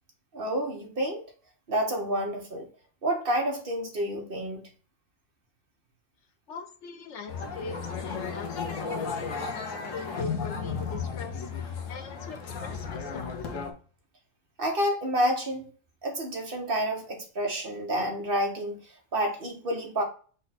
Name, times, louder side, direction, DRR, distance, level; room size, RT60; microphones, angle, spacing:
voice 1, 0.3-1.2 1.7-2.7 3.0-4.6 14.6-15.6 16.0-18.8 19.1-20.0, equal, 50° right, 2 dB, 1.0 m, -29 dB
voice 2, 6.5-13.3, left 4 dB, 70° left, 7 dB, 0.9 m, -42 dB
sound 1, 7.3-13.7, left 5 dB, 85° left, 1.1 m, -34 dB
5.1 x 2.2 x 4.0 m, 0.40 s
omnidirectional pair, 1.3 m